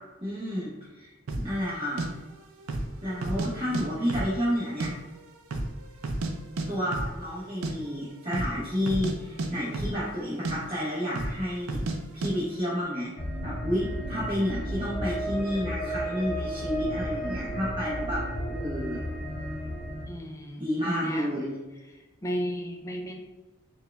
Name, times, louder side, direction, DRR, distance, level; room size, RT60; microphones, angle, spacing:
voice 1, 0.2-2.0 3.0-4.9 6.7-11.8 12.1-13.1 13.4-18.2 18.5-19.0 20.6-21.6, equal, 25° right, -9 dB, 0.9 m, -30 dB
sound 1, 1.3-1.5 2.0-2.1 2.6-2.9 3.2-3.8 4.1-4.9 5.2-5.3 5.5-6.3 6.6-6.7 6.9-7.1 7.4-7.7 8.2-8.6 8.8-10.2 10.4-10.6 11.1-11.4 11.7-12.0 12.2-12.3, right 2 dB, 85° right, 0.5 m, -31 dB
sound 2, 13.2-20.0, equal, 40° left, 0.7 m, -33 dB
voice 2, 20.1-20.6 21.0-21.3 22.2-23.2, equal, 15° left, 2 dB, 0.3 m, -34 dB
4.5 x 2.3 x 3.3 m, 1.1 s
head